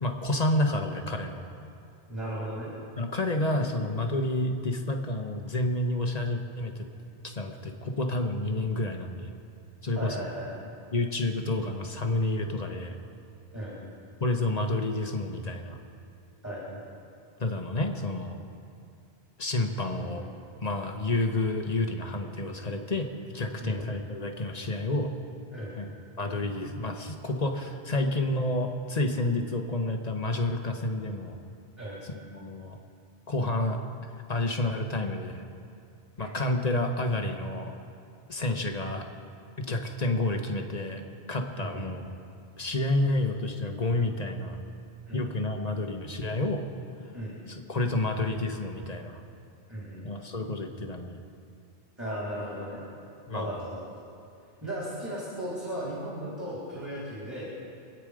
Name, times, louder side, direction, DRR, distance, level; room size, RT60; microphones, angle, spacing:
voice 1, 0.0-1.4 3.0-6.9 7.2-9.3 9.8-10.3 10.9-13.0 14.2-15.8 17.4-18.4 19.4-20.2 20.6-25.1 25.8-25.9 26.2-31.4 32.0-32.8 33.3-33.8 34.3-35.4 36.2-37.7 38.3-39.1 39.6-41.0 41.3-42.1 42.6-44.6 45.1-46.6 47.5-49.2 50.0-51.2 53.3-53.6, left 2 dB, 40° left, 4 dB, 1.3 m, -29 dB
voice 2, 2.1-2.7 10.0-10.7 13.5-13.8 16.4-16.8 19.8-20.3 23.6-23.8 25.5-25.8 31.8-32.0 36.2-36.3 41.6-41.9 45.1-45.3 47.1-47.4 49.7-50.0 52.0-52.8 53.3-53.8 54.6-57.5, equal, 15° right, -7 dB, 3.7 m, -36 dB
26.0 x 9.3 x 5.1 m, 2.5 s
omnidirectional pair, 1.1 m